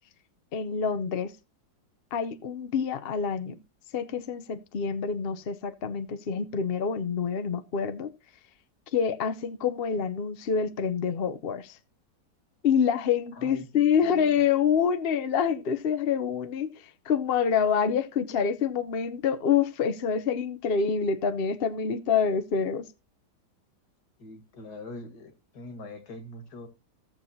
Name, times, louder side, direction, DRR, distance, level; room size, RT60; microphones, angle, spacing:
voice 1, 0.5-1.3 2.1-3.6 3.9-8.1 8.9-11.8 12.6-16.7 17.1-22.8, left 7 dB, 50° left, 0.7 m, -26 dB
voice 2, 13.3-14.5 24.2-26.7, left 2 dB, 65° left, 2.3 m, -43 dB
16.0 x 7.2 x 2.7 m
omnidirectional pair, 1.8 m